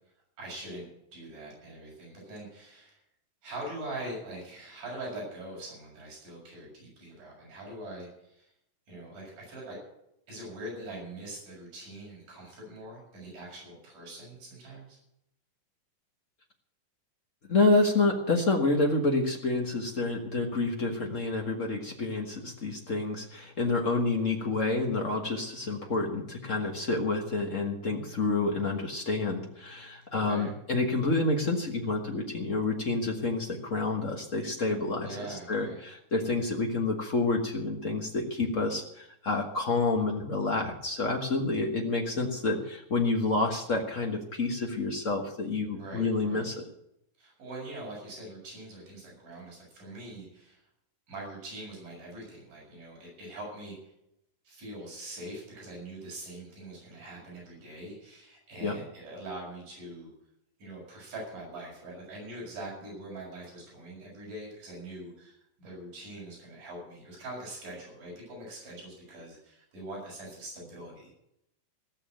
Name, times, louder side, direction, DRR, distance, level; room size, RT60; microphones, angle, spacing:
voice 1, 0.4-3.0 3.4-8.5 8.9-9.8 10.3-15.0 30.1-30.5 35.0-35.8 45.7-46.5 47.2-50.6 51.1-53.9 54.4-60.1 60.6-71.2, right 1 dB, 65° right, -4 dB, 8.2 m, -43 dB
voice 2, 17.5-46.6 58.6-58.7, left 3 dB, 70° left, 1 dB, 0.7 m, -28 dB
17.0 x 7.1 x 8.9 m, 0.78 s
omnidirectional pair, 3.9 m